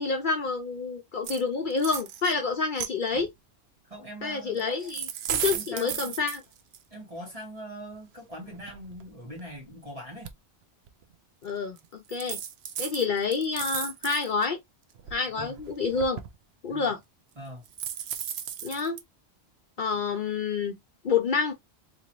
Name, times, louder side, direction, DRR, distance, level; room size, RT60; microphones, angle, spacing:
voice 1, 0.0-3.3 4.2-6.4 11.4-12.4 12.8-14.6 15.1-16.2 16.6-17.0 18.6-19.0 19.8-20.8 21.0-21.5, left 4 dB, 55° left, 0.7 m, -28 dB
sound 1, 1.2-1.4 1.7-2.3 2.8-3.3 4.6-6.8 7.9-8.0 8.5-9.7 10.2-10.3 10.9-11.0 11.8-11.9 12.1-14.4 14.9-16.3 17.6-19.0, right 9 dB, 75° right, 0.8 m, -35 dB
voice 2, 3.9-4.6 5.5-6.1 6.9-10.3 15.3-15.6 16.7-16.9 17.4-17.6, equal, 35° right, 2.2 m, -42 dB
3.8 x 3.0 x 2.9 m
omnidirectional pair, 1.1 m